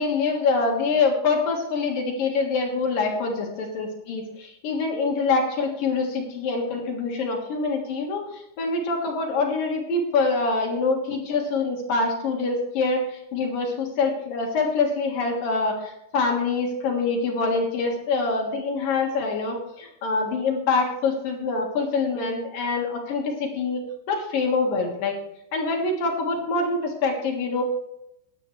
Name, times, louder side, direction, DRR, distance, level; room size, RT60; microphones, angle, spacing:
voice 1, 0.0-25.2 25.5-27.6, left 4 dB, 60° left, 1 dB, 2.8 m, -25 dB
20.0 x 8.9 x 3.2 m, 0.82 s
omnidirectional pair, 5.5 m